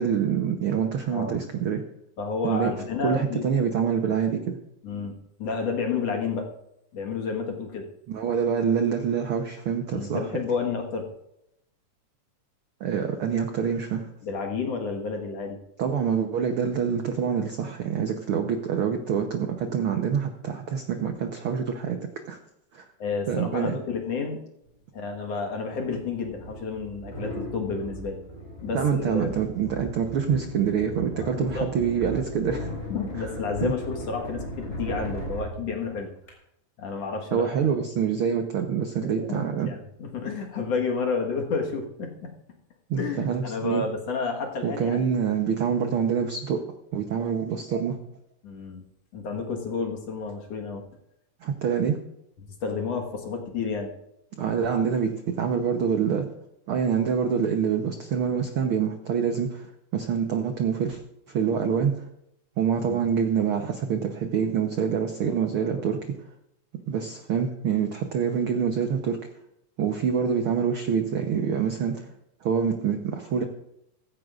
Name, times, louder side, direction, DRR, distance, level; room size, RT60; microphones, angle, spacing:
voice 1, 0.0-1.8 2.4-2.7 3.0-4.6 8.1-10.2 12.8-14.1 15.8-22.0 22.3-22.4 22.7-22.8 23.3-23.8 28.7-32.7 33.2-33.3 33.6-33.7 37.3-39.7 42.9-43.8 44.6-46.6 46.9-48.0 51.4-52.0 54.4-56.3 56.7-61.0 61.3-62.1 62.6-66.2 66.9-69.2 69.8-72.1 72.4-73.4, right 7 dB, 85° right, 5 dB, 1.2 m, -26 dB
voice 2, 1.1-1.4 2.2-3.5 4.8-6.5 6.9-7.9 9.9-11.1 14.2-15.6 23.0-24.4 24.9-28.2 28.6-29.3 31.2-31.7 32.9-36.1 36.8-37.6 39.2-42.3 43.0-45.1 48.4-48.8 49.1-50.8 52.6-53.9 62.8-63.0 65.2-65.9, left 5 dB, 55° left, 2 dB, 2.4 m, -31 dB
sound 1, 24.7-24.8 25.7-36.3, equal, 20° left, 5.0 m, -37 dB
16.0 x 15.0 x 2.5 m, 0.79 s
omnidirectional pair, 3.8 m